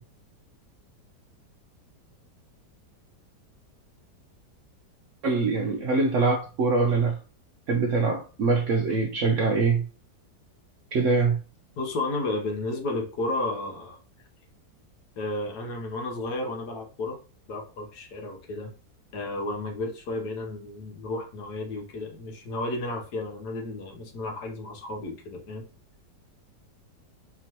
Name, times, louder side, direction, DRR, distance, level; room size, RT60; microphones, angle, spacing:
voice 1, 5.2-7.2 7.7-9.9 10.9-11.4, right 4 dB, 70° right, 0.7 m, -23 dB
voice 2, 11.8-14.0 15.2-17.2 17.5-18.7 19.1-25.7, left 2 dB, 70° left, 1.5 m, -32 dB
4.4 x 3.0 x 2.9 m
omnidirectional pair, 1.8 m